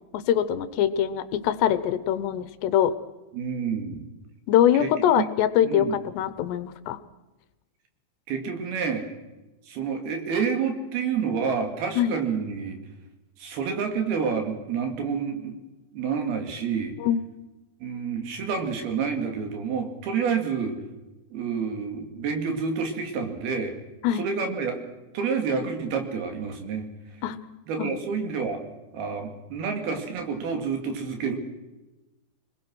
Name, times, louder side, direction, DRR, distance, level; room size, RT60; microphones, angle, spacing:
voice 1, 0.1-2.9 4.5-7.0 12.0-12.1 17.0-17.2 24.0-24.2 27.2-27.4 27.8-28.0, left 10 dB, 80° left, 13 dB, 2.9 m, -23 dB
voice 2, 3.3-4.0 4.8-4.9 5.2-5.3 5.6-6.0 8.3-9.0 9.7-12.8 13.4-15.6 15.9-16.9 17.8-20.8 21.3-23.8 24.1-24.8 25.1-26.9 27.7-28.6 28.9-31.4, right 6 dB, 65° right, 5 dB, 4.0 m, -28 dB
25.5 x 20.5 x 6.2 m, 1.1 s
omnidirectional pair, 5.1 m